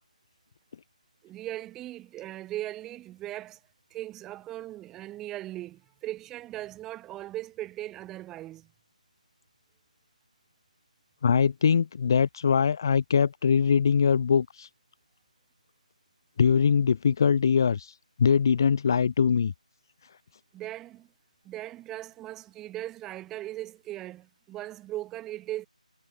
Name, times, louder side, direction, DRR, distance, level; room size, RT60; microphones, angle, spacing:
voice 1, 1.2-3.6 3.9-8.7 20.5-21.1 21.4-25.7, right 14 dB, 10° right, 6.1 m, -38 dB
voice 2, 11.2-14.7 16.4-19.5, left 6 dB, 30° left, 0.7 m, -22 dB
figure-of-eight pair, 170°, 4 cm